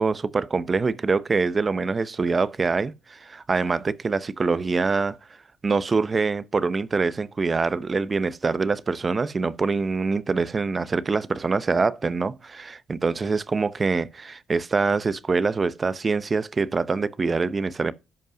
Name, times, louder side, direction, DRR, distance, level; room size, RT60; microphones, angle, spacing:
voice 1, 0.0-5.2 5.6-17.9, right 4 dB, 30° right, 0.8 m, -24 dB
12.5 x 5.3 x 5.1 m
cardioid pair, 90°, 0 cm